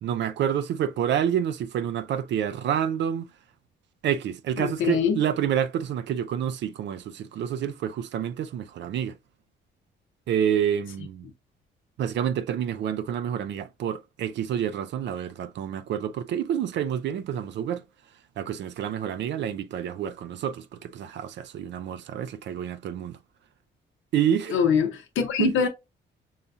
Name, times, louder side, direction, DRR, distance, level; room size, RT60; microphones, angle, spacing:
voice 1, 0.0-3.3 4.0-9.2 10.3-11.3 12.0-17.8 18.4-23.2 24.1-24.6 25.4-25.5, right 9 dB, 65° right, 0.4 m, -28 dB
voice 2, 4.6-5.2 24.5-25.7, left 6 dB, 80° left, 0.7 m, -24 dB
5.5 x 2.6 x 2.3 m
cardioid pair, 90°, 20 cm